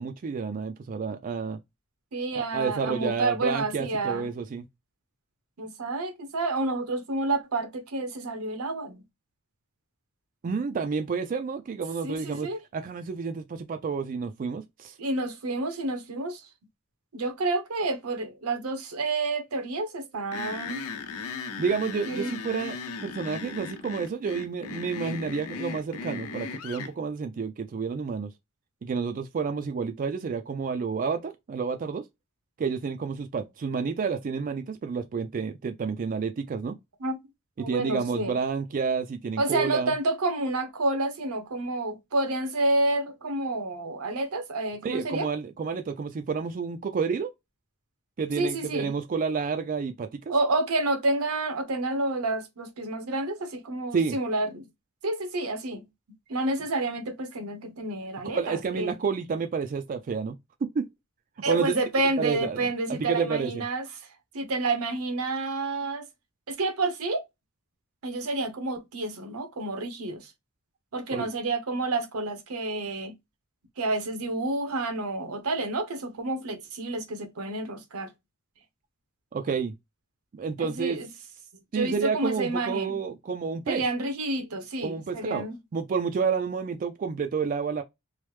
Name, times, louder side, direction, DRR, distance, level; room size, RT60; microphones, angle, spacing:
voice 1, 0.0-1.6 2.3-4.6 10.4-15.0 21.6-28.3 28.8-32.1 32.6-36.8 37.6-39.9 44.8-47.3 48.2-50.3 53.9-54.2 58.3-60.4 60.6-60.9 61.5-61.7 62.2-63.6 71.1-71.3 79.3-79.7 80.3-81.0 81.7-83.8 84.8-85.5 85.7-87.8, right 5 dB, 40° right, 0.3 m, -30 dB
voice 2, 2.1-4.3 5.6-9.0 12.0-12.6 15.0-16.4 17.1-20.8 22.1-22.3 37.0-37.2 37.6-38.4 39.4-45.3 48.4-48.9 50.3-54.7 55.0-55.9 56.3-59.0 61.4-63.9 64.3-66.1 66.5-67.3 68.0-70.3 70.9-73.1 73.8-78.1 80.6-81.1 81.7-83.0 83.7-85.6, right 2 dB, 80° right, 0.8 m, -29 dB
sound 1, 20.3-26.9, left 5 dB, 80° left, 0.5 m, -37 dB
3.1 x 2.0 x 3.1 m
head